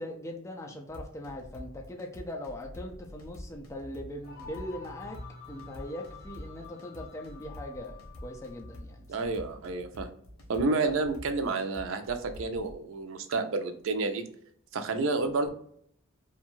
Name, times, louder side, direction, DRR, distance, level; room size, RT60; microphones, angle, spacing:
voice 1, 0.0-5.2 5.5-9.3 10.8-10.9, left 1 dB, 15° left, 0 dB, 0.4 m, -40 dB
sound 1, 0.9-12.7, left 1 dB, 85° left, 0.7 m, -46 dB
sound 2, 4.2-8.8, left 5 dB, 45° left, 0.8 m, -49 dB
voice 2, 9.1-10.1 10.5-14.2 14.7-15.5, right 3 dB, 70° right, 7 dB, 0.4 m, -30 dB
2.5 x 2.3 x 3.0 m, 0.66 s
head